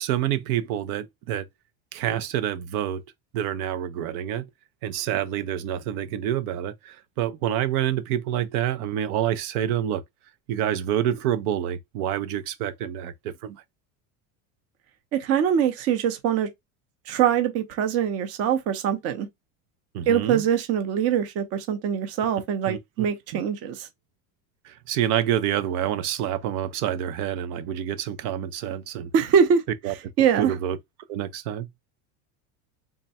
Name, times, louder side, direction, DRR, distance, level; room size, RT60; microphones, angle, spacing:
voice 1, 0.0-1.5 1.9-3.0 3.3-4.4 4.8-10.0 10.5-13.6 19.9-20.4 22.7-22.8 23.3-23.4 24.6-29.1 29.8-29.9 30.4-30.8 31.1-31.7, right 11 dB, 85° right, 0.7 m, -27 dB
voice 2, 15.1-16.5 17.1-19.3 20.1-23.9 29.1-29.6 30.2-30.5, right 8 dB, 35° right, 0.6 m, -23 dB
3.6 x 2.2 x 4.0 m
cardioid pair, 170°, 43 cm